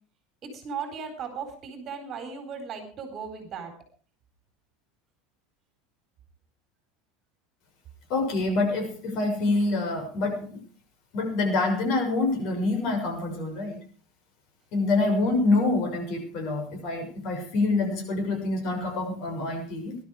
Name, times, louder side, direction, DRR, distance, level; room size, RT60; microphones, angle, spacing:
voice 1, 0.4-3.7, right 6 dB, 30° right, 7 dB, 4.1 m, -37 dB
voice 2, 8.1-10.6 11.1-13.8 14.7-20.0, left 2 dB, 50° left, 3 dB, 6.6 m, -26 dB
19.5 x 12.0 x 5.0 m, 0.43 s
supercardioid pair, 160°, 0 cm